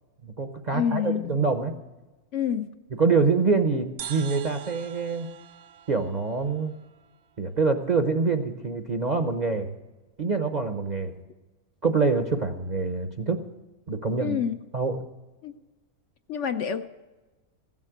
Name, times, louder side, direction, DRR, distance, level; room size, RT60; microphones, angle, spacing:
voice 1, 0.2-1.7 3.0-5.3 5.9-6.7 7.4-9.8 10.2-11.2 11.8-13.4 13.9-14.4 14.7-15.0, right 4 dB, 40° right, 7 dB, 0.7 m, -25 dB
voice 2, 0.7-1.4 2.3-2.7 14.2-14.6 15.4-15.5 16.3-16.9, left 8 dB, 65° left, 8 dB, 0.8 m, -27 dB
sound 1, 4.0-7.5, right 9 dB, 70° right, 1.1 m, -43 dB
16.0 x 7.3 x 9.0 m, 1.2 s
omnidirectional pair, 1.6 m